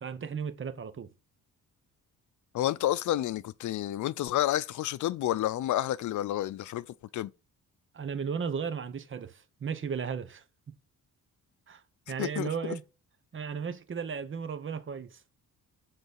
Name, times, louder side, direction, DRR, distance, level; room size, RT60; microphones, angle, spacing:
voice 1, 0.0-1.1 7.9-10.7 11.7-11.8 12.1-12.8 13.3-15.2, right 6 dB, 40° right, 1.0 m, -35 dB
voice 2, 2.5-6.8 7.1-7.3 12.2-12.7, left 13 dB, 65° left, 0.5 m, -30 dB
7.9 x 4.0 x 6.4 m
cardioid pair, 120°, 32 cm